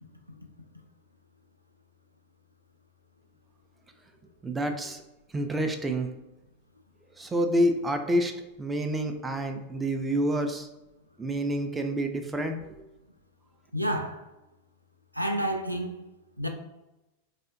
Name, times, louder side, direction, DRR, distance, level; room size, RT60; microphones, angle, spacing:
voice 1, 4.4-5.0 5.3-6.1 7.2-8.3 8.6-10.7 11.2-12.6, right 1 dB, 10° right, 0.3 m, -28 dB
voice 2, 13.7-14.2 15.1-15.9 16.4-16.5, right 1 dB, 90° right, 0.3 m, -29 dB
4.1 x 2.1 x 2.4 m
figure-of-eight pair, 90°, 0 cm